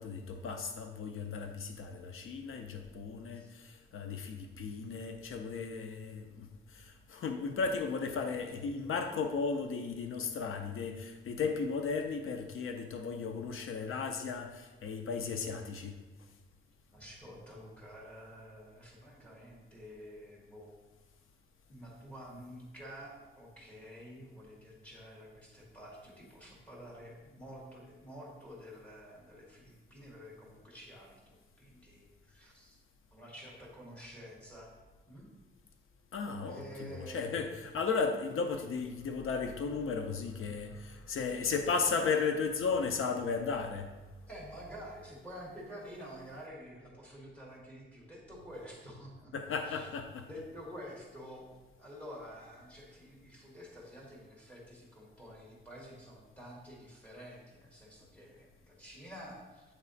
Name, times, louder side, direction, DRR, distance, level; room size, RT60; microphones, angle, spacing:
voice 1, 0.0-16.0 36.1-43.9 49.3-50.3, left 5 dB, 75° left, 6 dB, 0.5 m, -35 dB
voice 2, 16.9-20.7 21.7-32.8 33.1-34.7 35.1-35.3 36.4-37.3 44.3-49.9 50.2-51.4 51.8-59.6, equal, 5° left, -4 dB, 1.6 m, -49 dB
8.3 x 3.2 x 3.8 m, 1.2 s
wide cardioid pair, 175°, 21 cm